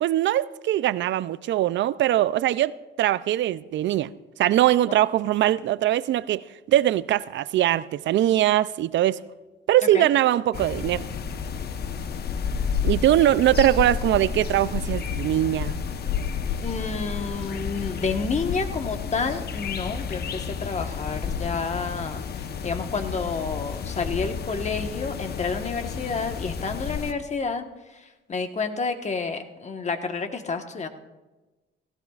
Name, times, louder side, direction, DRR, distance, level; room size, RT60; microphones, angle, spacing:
voice 1, 0.0-4.1 4.4-9.2 9.7-11.1 12.8-15.7, right 13 dB, 65° right, 0.4 m, -22 dB
sound 1, 10.5-27.1, left 6 dB, 55° left, 0.9 m, -31 dB
voice 2, 16.6-22.2 22.6-27.7 27.9-30.9, left 4 dB, 35° left, 1.3 m, -29 dB
18.0 x 16.0 x 2.4 m
cardioid pair, 90°, 20 cm